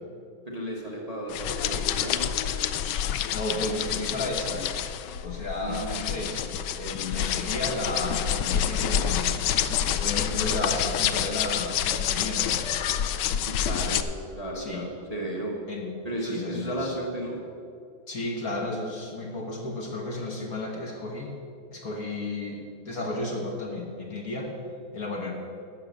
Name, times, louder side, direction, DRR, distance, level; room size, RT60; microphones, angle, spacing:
voice 1, 0.5-2.3 5.6-6.0 13.4-14.0 14.3-15.5 16.0-17.4, right 1 dB, 20° right, -2 dB, 1.2 m, -34 dB
sound 1, 1.3-14.0, left 9 dB, 75° left, 1.0 m, -28 dB
voice 2, 3.3-4.7 5.2-6.5 6.8-9.4 10.0-12.6 14.5-14.8 15.7-15.9 16.2-17.0 18.1-21.3 21.7-22.6 22.8-24.5 24.9-25.3, left 2 dB, 45° left, 0 dB, 1.6 m, -33 dB
12.0 x 7.8 x 6.7 m, 2.5 s
omnidirectional pair, 2.3 m